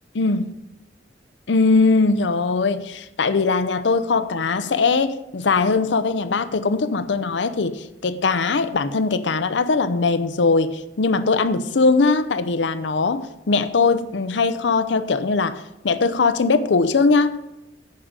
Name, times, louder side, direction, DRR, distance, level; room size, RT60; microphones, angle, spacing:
voice 1, 0.1-0.5 1.5-17.5, left 4 dB, 85° left, 0.6 m, -20 dB
9.9 x 5.1 x 7.3 m
head